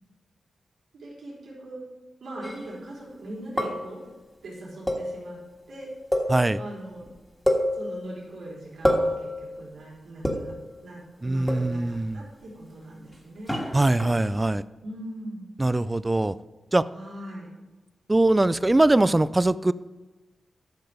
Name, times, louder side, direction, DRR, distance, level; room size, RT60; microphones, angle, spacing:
voice 1, 0.9-1.8 2.2-4.0 4.4-5.4 5.7-5.9 6.6-7.1 7.7-10.5 10.8-13.6 14.8-15.5 16.9-17.5, right 1 dB, 90° right, -5 dB, 3.8 m, -40 dB
sound 1, 2.4-2.7 3.6-4.1 4.9-5.5 6.1-6.8 7.1-7.2 7.5-8.3 8.9-9.5 10.2-10.7 11.5-12.0 13.5-14.4, equal, 5° left, 1.7 m, -28 dB
voice 2, 11.2-12.3 13.7-14.6 15.6-16.3 16.7-16.8 18.1-19.7, right 2 dB, 20° right, 16 dB, 0.3 m, -22 dB
12.0 x 6.8 x 5.0 m, 1.2 s
wide cardioid pair, 105°, 0 cm